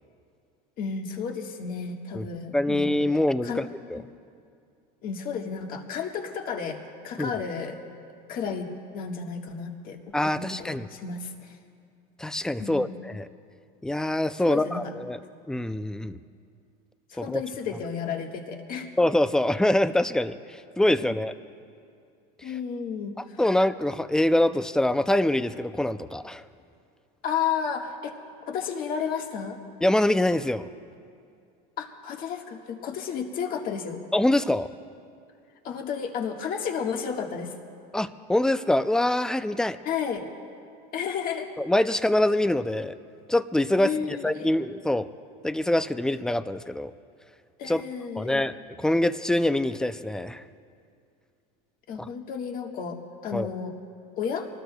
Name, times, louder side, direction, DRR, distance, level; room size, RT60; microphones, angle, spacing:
voice 1, 0.8-2.9 3.4-3.7 5.0-6.8 7.0-7.8 8.3-8.7 8.9-10.0 10.3-11.5 12.6-13.0 14.4-14.8 16.0-16.1 17.1-18.9 21.0-21.2 22.4-23.4 27.2-28.1 28.4-29.6 31.8-34.0 35.6-37.5 39.8-40.3 40.9-41.5 43.8-44.5 47.6-48.5 51.9-53.7 54.2-54.5, left 6 dB, 45° left, 2 dB, 1.6 m, -32 dB
voice 2, 2.5-4.0 7.2-7.3 10.1-10.9 12.2-13.3 13.8-15.2 15.5-16.2 17.2-17.4 19.0-21.3 23.4-26.4 29.8-30.7 34.1-34.7 37.9-39.8 41.6-42.9 43.3-43.9 44.2-45.1 45.4-46.9 47.7-47.8 48.2-50.4 52.0-52.1 53.3-53.5, left 1 dB, 5° left, 12 dB, 0.4 m, -24 dB
25.0 x 19.5 x 2.3 m, 2.4 s
supercardioid pair, 125°, 20 cm